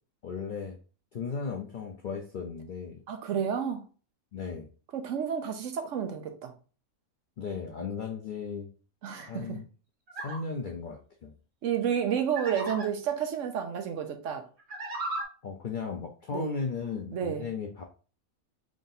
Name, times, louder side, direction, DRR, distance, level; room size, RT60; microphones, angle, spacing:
voice 1, 0.2-0.8 1.1-3.0 4.3-4.7 7.4-8.7 9.3-9.6 10.2-11.3 15.4-17.8, left 5 dB, 75° left, 0.4 m, -36 dB
voice 2, 3.1-3.9 4.9-6.5 9.0-9.6 11.6-14.5 16.3-16.5 17.1-17.5, right 8 dB, 65° right, 1.0 m, -31 dB
sound 1, 10.1-10.4 12.3-12.9 14.6-15.2, right 2 dB, 50° right, 1.9 m, -35 dB
3.6 x 2.6 x 3.9 m
omnidirectional pair, 1.5 m